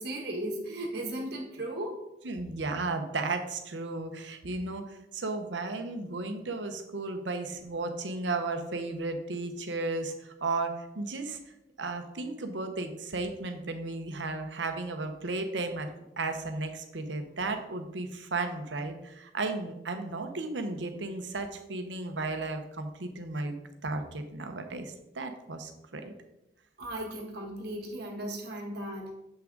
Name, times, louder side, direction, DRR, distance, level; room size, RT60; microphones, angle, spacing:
voice 1, 0.0-2.0 26.8-29.1, right 1 dB, 60° right, -1 dB, 1.4 m, -36 dB
voice 2, 2.2-11.4 11.8-15.9 16.2-23.5 23.8-26.1, right 3 dB, 80° right, 6 dB, 1.0 m, -34 dB
7.6 x 6.0 x 3.8 m, 0.88 s
head